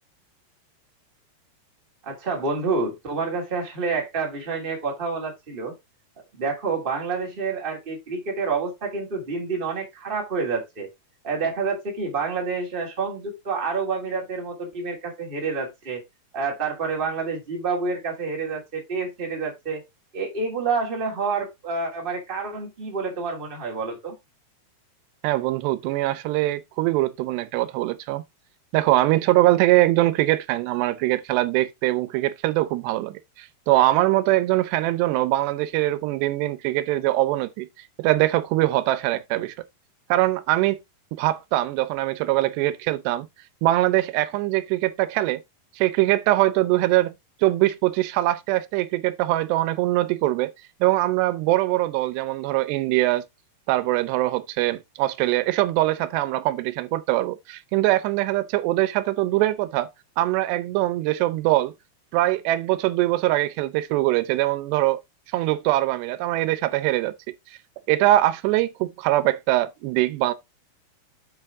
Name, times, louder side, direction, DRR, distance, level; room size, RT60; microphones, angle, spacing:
voice 1, 2.0-5.7 6.3-10.9 11.2-16.0 16.3-19.8 20.1-24.1, right 4 dB, 15° right, 1.9 m, -28 dB
voice 2, 25.2-28.2 28.7-37.7 38.0-39.5 40.1-40.8 41.2-43.3 43.6-45.4 45.8-47.1 47.4-50.5 50.8-53.2 53.7-59.9 60.2-61.7 62.1-65.0 65.3-67.1 67.9-70.3, right 16 dB, 85° right, 2.8 m, -22 dB
8.2 x 5.4 x 3.5 m
omnidirectional pair, 4.8 m